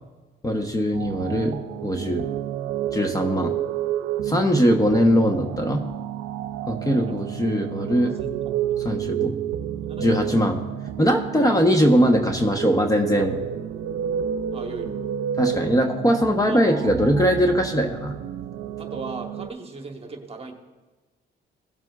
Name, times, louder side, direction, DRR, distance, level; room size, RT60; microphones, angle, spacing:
voice 1, 0.4-2.2 2.9-3.5 4.2-5.8 6.7-8.2 8.8-9.3 10.0-10.6 11.0-13.4 15.4-18.1, equal, 15° left, 4 dB, 1.0 m, -21 dB
sound 1, 0.9-19.5, right 10 dB, 90° right, 0.5 m, -30 dB
voice 2, 7.6-8.3 8.7-8.8 9.8-10.3 11.3-11.5 14.5-15.1 16.5-16.6 18.8-20.5, right 3 dB, 30° right, 3 dB, 1.3 m, -38 dB
17.0 x 7.4 x 2.4 m, 1.3 s
cardioid pair, 90°, 20 cm